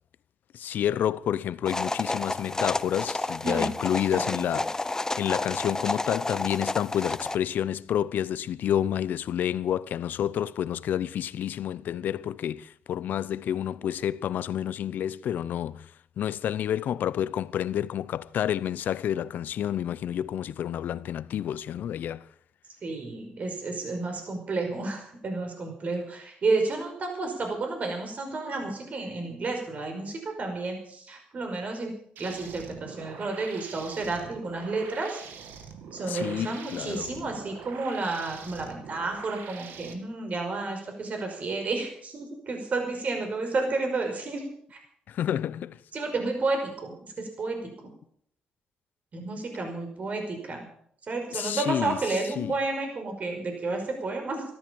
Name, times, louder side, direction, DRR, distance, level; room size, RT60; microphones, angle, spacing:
voice 1, 0.5-4.8 5.2-15.9 16.2-22.2 36.1-37.1 45.1-45.8 51.3-52.0 52.4-52.5, left 10 dB, 70° left, 0.6 m, -29 dB
sound 1, 1.7-7.4, left 2 dB, 20° left, 0.6 m, -30 dB
voice 2, 4.1-4.5 22.8-31.9 32.2-35.2 35.9-44.8 45.9-47.9 49.1-50.7 51.1-54.4, right 3 dB, 50° right, 5.4 m, -31 dB
sound 2, 32.2-39.9, right 6 dB, 80° right, 2.0 m, -44 dB
14.0 x 13.0 x 7.1 m
cardioid pair, 75°, 3 cm